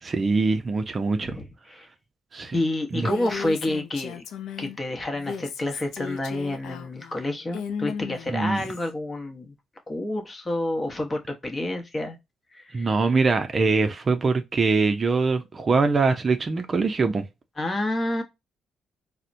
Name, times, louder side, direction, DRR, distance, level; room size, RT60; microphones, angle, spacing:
voice 1, 0.0-1.4 2.3-2.5 2.9-3.1 8.3-8.6 12.7-17.2, right 4 dB, 35° right, 0.5 m, -23 dB
voice 2, 1.2-1.9 2.5-4.2 4.6-9.6 9.9-12.2 12.5-12.9 17.6-18.2, left 1 dB, 25° left, 0.9 m, -29 dB
Female speech woman speaking, 2.9-4.8 5.1-8.9, left 7 dB, 85° left, 0.4 m, -36 dB
4.1 x 2.1 x 2.5 m
cardioid pair, 90°, 0 cm